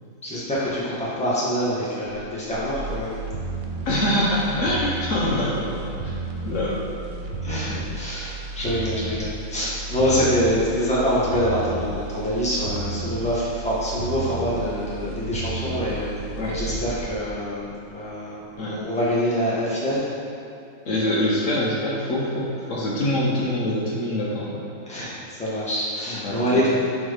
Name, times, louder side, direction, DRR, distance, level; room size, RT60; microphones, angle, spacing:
voice 1, 0.2-3.1 7.4-16.1 16.5-20.0 24.9-26.7, equal, 5° left, -9 dB, 1.3 m, -25 dB
sound 1, 2.1-18.1 18.5-18.6, right 3 dB, 70° right, 0.6 m, -33 dB
voice 2, 3.8-6.1 6.4-7.2 16.4-16.6 18.6-18.8 20.9-24.6 26.2-26.7, left 1 dB, 65° left, -5 dB, 1.2 m, -25 dB
6.8 x 3.1 x 4.9 m, 2.7 s
omnidirectional pair, 1.5 m